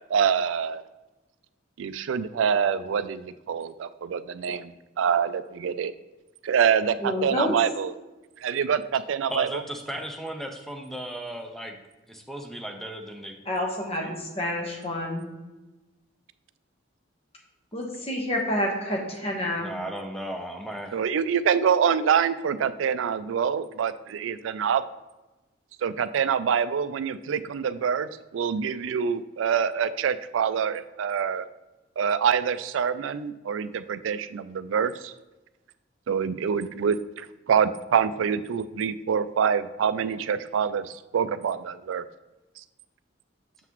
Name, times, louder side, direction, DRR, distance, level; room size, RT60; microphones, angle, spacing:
voice 1, 0.1-0.8 1.8-5.9 6.4-7.9 8.4-9.5 20.9-24.8 25.8-31.5 32.0-35.1 36.1-42.0, right 7 dB, 80° right, 14 dB, 0.3 m, -26 dB
voice 2, 7.0-7.5 13.5-15.3 17.7-19.8, left 1 dB, 30° left, 0 dB, 1.2 m, -28 dB
voice 3, 9.3-11.8 12.1-13.4 19.6-21.0, right 1 dB, ahead, 3 dB, 0.6 m, -36 dB
6.9 x 5.8 x 3.0 m, 1.1 s
head